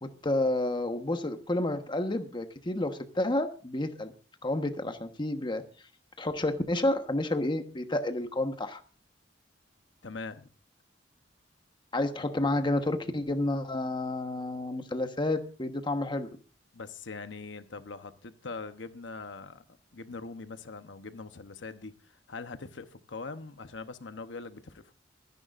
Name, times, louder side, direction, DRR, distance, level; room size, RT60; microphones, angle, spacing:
voice 1, 0.0-4.1 4.4-5.7 6.2-8.8 11.9-16.3, left 1 dB, 25° left, 7 dB, 1.2 m, -30 dB
voice 2, 10.0-10.5 16.7-19.6 19.9-24.9, left 4 dB, 80° left, 10 dB, 0.9 m, -42 dB
24.5 x 10.5 x 2.5 m, 0.36 s
head